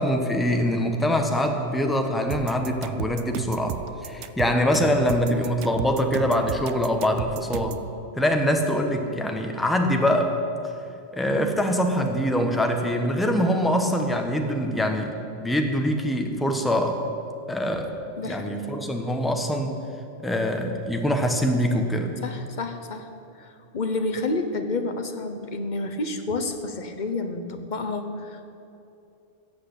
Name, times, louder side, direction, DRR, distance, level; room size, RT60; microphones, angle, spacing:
voice 1, 0.0-3.8 4.0-7.8 8.2-10.4 11.1-17.0 17.5-17.9 18.2-19.8 20.2-22.1, equal, ahead, 4 dB, 1.0 m, -24 dB
sound 1, 2.3-7.9, right 10 dB, 85° right, 0.9 m, -33 dB
voice 2, 18.2-18.6 22.2-23.1 23.4-28.5, left 2 dB, 40° left, 7 dB, 1.1 m, -30 dB
15.0 x 8.3 x 8.4 m, 2.7 s
omnidirectional pair, 1.2 m